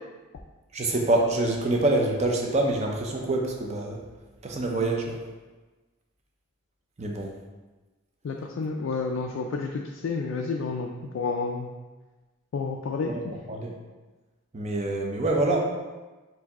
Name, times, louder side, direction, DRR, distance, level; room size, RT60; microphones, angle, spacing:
voice 1, 0.7-4.0 4.4-5.2 7.0-7.3 13.1-13.2 13.5-13.7 14.5-15.6, right 2 dB, 30° right, 1 dB, 0.5 m, -25 dB
voice 2, 8.2-11.7 12.5-13.3, left 4 dB, 65° left, 1 dB, 0.3 m, -30 dB
4.6 x 2.7 x 4.1 m, 1.2 s
head